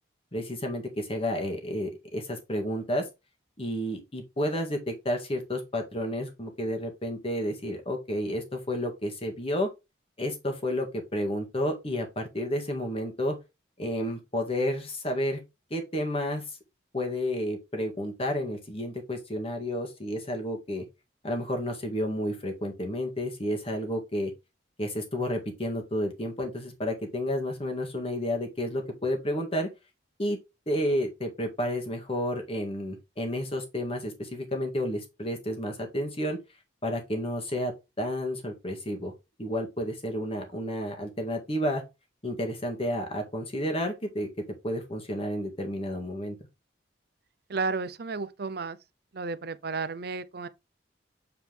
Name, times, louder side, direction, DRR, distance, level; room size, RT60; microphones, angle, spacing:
voice 1, 0.3-3.1 3.6-9.7 10.2-13.4 13.8-15.4 15.7-16.6 16.9-20.9 21.2-24.3 24.8-29.7 30.2-30.4 30.7-36.4 36.8-37.7 38.0-39.1 39.4-41.8 42.2-44.3 44.6-46.4, equal, 30° left, 1.9 m, -31 dB
voice 2, 47.5-48.8 49.1-50.5, right 4 dB, 55° right, 0.6 m, -32 dB
7.7 x 4.4 x 3.4 m
head